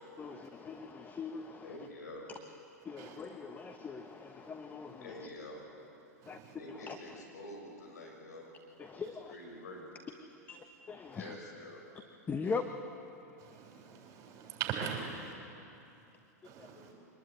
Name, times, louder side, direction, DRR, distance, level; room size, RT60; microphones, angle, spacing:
voice 1, 0.2-1.9 2.8-5.3 6.3-6.4 6.7-7.2 8.8-9.4 10.5-10.6 10.9-11.4 11.9-12.7 13.5-13.8 14.4-14.5 16.4-16.8, left 5 dB, 20° left, 1.2 m, -41 dB
voice 2, 1.6-2.3 5.0-5.7 6.6-8.5 9.3-9.8 11.1-11.9 16.8-16.9, left 1 dB, 75° left, 6.9 m, -47 dB
voice 3, 6.2-6.5 13.4-15.3 16.4-16.9, right 7 dB, 35° right, 6.8 m, -41 dB
24.5 x 20.0 x 9.7 m
hypercardioid pair, 100°, 9 cm